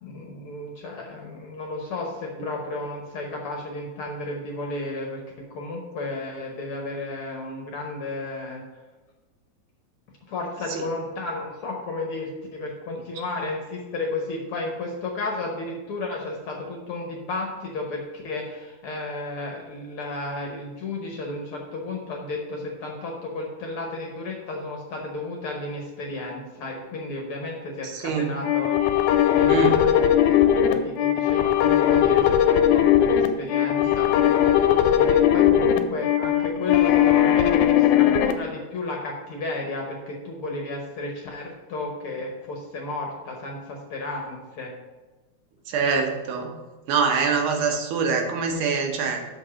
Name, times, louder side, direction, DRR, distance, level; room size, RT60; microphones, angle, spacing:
voice 1, 0.0-5.2 5.5-8.6 10.3-28.8 29.3-44.7, left 2 dB, 60° left, 0 dB, 1.5 m, -33 dB
voice 2, 27.8-28.3 29.5-29.8 33.8-33.9 45.7-46.5 46.9-49.2, right 5 dB, 85° right, 2 dB, 2.6 m, -24 dB
sound 1, 28.4-38.3, left 10 dB, 85° left, 2.0 m, -19 dB
6.5 x 5.3 x 6.2 m, 1.2 s
omnidirectional pair, 3.5 m